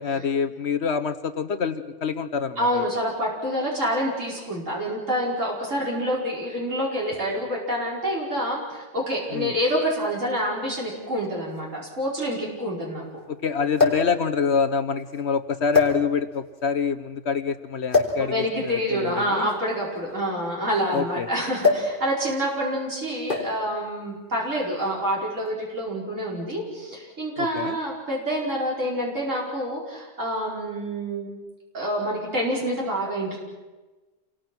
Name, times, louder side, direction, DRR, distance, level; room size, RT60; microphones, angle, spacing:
voice 1, 0.0-2.8 9.3-9.5 13.3-19.5 20.9-21.3 27.4-27.8, left 5 dB, 60° left, 9 dB, 1.2 m, -26 dB
voice 2, 2.6-13.0 18.2-31.3 31.7-33.4, equal, 85° right, -4 dB, 5.5 m, -27 dB
sound 1, 10.0-10.1 11.2-11.3 11.6-11.7 13.7-14.2 15.0-15.2 15.7-16.4 17.9-18.2 19.4-21.0 21.6-22.0 22.2-22.5 23.3-23.7 24.6-24.9, left 4 dB, 40° left, 4.7 m, -23 dB
29.0 x 22.5 x 6.1 m, 1.2 s
omnidirectional pair, 1.3 m